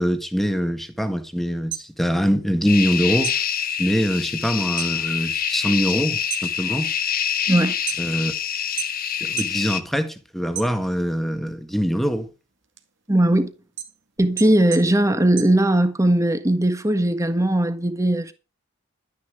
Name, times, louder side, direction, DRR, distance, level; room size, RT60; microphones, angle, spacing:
voice 1, 0.0-3.3 3.8-6.9 8.0-8.3 9.2-12.3, equal, ahead, 1.6 m, -23 dB
sound 1, 1.5-2.9 3.2-5.0 5.3-5.8 6.2-8.3 8.8-9.6 10.0-11.2 11.6-16.2, right 11 dB, 60° right, 2.2 m, -35 dB
sound 2, 2.7-9.8, left 8 dB, 45° left, 1.4 m, -26 dB
voice 2, 13.1-13.5 14.2-18.3, right 1 dB, 15° right, 1.5 m, -19 dB
12.0 x 10.0 x 4.9 m
head